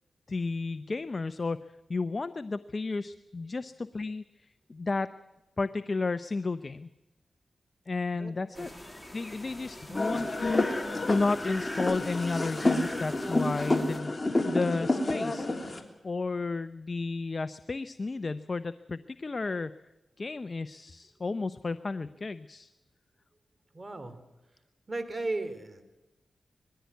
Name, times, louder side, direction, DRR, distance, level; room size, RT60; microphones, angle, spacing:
voice 1, 0.3-1.6 1.9-5.1 5.6-6.9 7.9-8.7 9.1-10.6 11.1-15.5 16.0-19.7 20.2-22.7, left 3 dB, 45° left, 13 dB, 0.6 m, -32 dB
voice 2, 8.1-8.7 9.9-10.2 23.7-24.2 24.9-25.8, right 2 dB, 40° right, 10 dB, 3.0 m, -36 dB
sound 1, 8.5-14.0, left 1 dB, 10° left, 2.3 m, -43 dB
sound 2, 9.9-15.8, left 2 dB, 30° left, 3.1 m, -29 dB
20.5 x 15.0 x 9.3 m, 1.0 s
cardioid pair, 50°, 0 cm